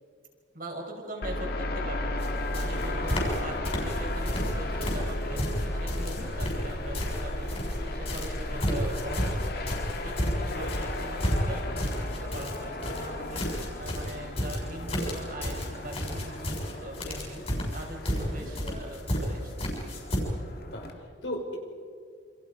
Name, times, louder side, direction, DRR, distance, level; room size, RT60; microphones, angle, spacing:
voice 1, 0.5-9.7 10.0-19.5, right 1 dB, 45° right, 0 dB, 5.5 m, -42 dB
sound 1, 1.2-20.9, left 1 dB, 50° left, 2.2 m, -35 dB
sound 2, 2.2-2.3 2.5-3.4 3.6-4.5 4.8-7.8 8.1-20.2, equal, 30° left, 6.9 m, -32 dB
voice 2, 20.6-21.6, left 1 dB, 75° left, 1 dB, 5.5 m, -38 dB
28.5 x 28.0 x 5.2 m, 2.3 s
head